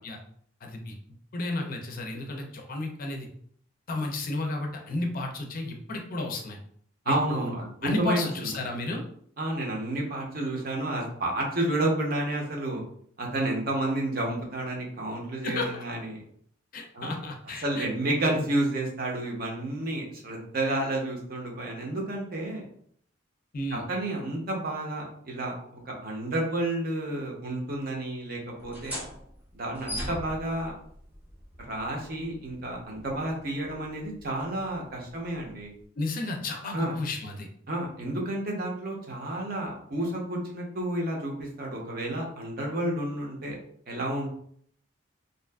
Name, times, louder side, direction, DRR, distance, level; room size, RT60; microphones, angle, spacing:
voice 1, 0.6-0.9 1.3-3.3 3.9-6.6 7.1-7.5 7.8-9.0 15.4-15.8 16.7-17.9 23.5-23.9 30.1-30.2 36.0-37.5, left 2 dB, 45° left, 2 dB, 0.4 m, -32 dB
voice 2, 7.1-8.5 9.4-12.8 13.2-16.2 16.9-17.1 17.6-22.6 23.7-29.0 29.5-30.7 31.7-35.7 36.7-36.9 37.7-43.5 43.9-44.3, right 1 dB, 50° right, -1 dB, 0.7 m, -30 dB
sound 1, 28.6-35.9, equal, 10° right, 0.7 m, -43 dB
2.6 x 2.4 x 2.2 m, 0.62 s
head